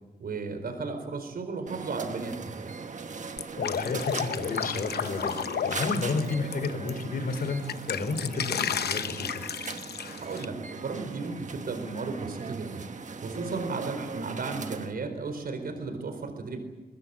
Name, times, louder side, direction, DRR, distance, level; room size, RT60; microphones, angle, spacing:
voice 1, 0.2-2.7 10.2-12.8 13.2-16.6, right 4 dB, 65° right, 7 dB, 4.5 m, -34 dB
sound 1, 1.7-14.9, right 4 dB, 50° right, 1.4 m, -40 dB
Drip, 3.4-6.9 7.3-10.4, left 8 dB, 80° left, 0.8 m, -32 dB
voice 2, 3.6-9.4, left 3 dB, 65° left, 8 dB, 4.6 m, -32 dB
23.0 x 21.5 x 8.9 m, 1.2 s
wide cardioid pair, 130°, 16 cm